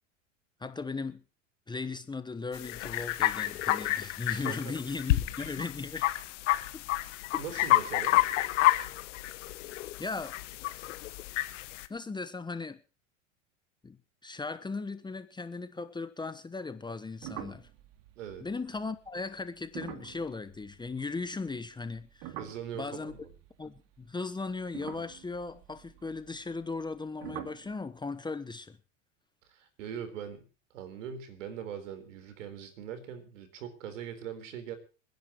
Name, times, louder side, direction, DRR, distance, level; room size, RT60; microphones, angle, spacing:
voice 1, 0.6-1.2 1.7-6.1 6.7-6.8 7.3-7.7 8.1-8.2 10.0-10.4 11.9-12.8 13.8-14.0 14.2-17.7 18.4-22.4 22.7-23.1 23.6-28.8, left 3 dB, 10° left, 1.1 m, -37 dB
sound 1, 2.5-11.9, left 16 dB, 70° left, 1.4 m, -30 dB
voice 2, 4.3-4.7 7.4-8.2 18.2-18.5 22.4-23.3 29.5-30.5 30.7-34.8, right 8 dB, 75° right, 4.2 m, -41 dB
sound 2, 17.2-21.6 21.8-24.0 24.6-27.0 27.2-27.7, right 12 dB, 55° right, 2.8 m, -46 dB
27.5 x 10.5 x 3.0 m
hypercardioid pair, 90°, 38 cm